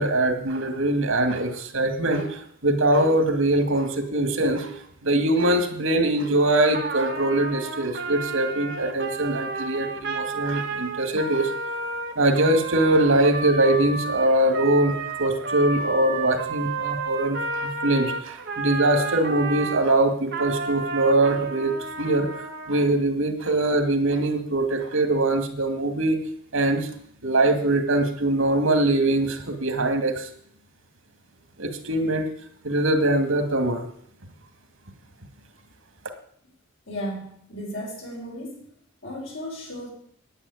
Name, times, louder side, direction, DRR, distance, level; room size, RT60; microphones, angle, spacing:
voice 1, 0.0-4.7 5.0-11.5 12.2-22.3 22.7-26.2 26.5-26.9 27.2-30.3 31.6-32.3 32.6-33.8, right 1 dB, 85° right, 6 dB, 2.3 m, -22 dB
Trumpet, 6.7-19.8 20.3-22.8, right 3 dB, 55° right, 1.7 m, -31 dB
voice 2, 36.9-38.6 39.0-39.9, equal, 75° left, -1 dB, 5.1 m, -35 dB
9.8 x 9.6 x 9.6 m, 0.66 s
head